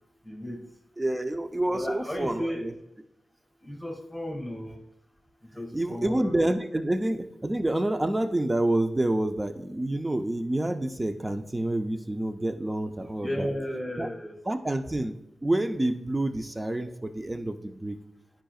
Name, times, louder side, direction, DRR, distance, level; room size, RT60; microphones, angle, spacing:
voice 1, 0.2-0.6 1.7-2.6 3.6-4.8 5.5-6.4 13.2-14.4, equal, 5° left, -2 dB, 1.8 m, -34 dB
voice 2, 1.0-2.7 5.7-13.5 14.0-14.1 14.5-15.2 15.4-18.0, right 1 dB, 25° right, 8 dB, 0.7 m, -28 dB
10.0 x 5.2 x 2.4 m, 0.83 s
supercardioid pair, 40°, 0 cm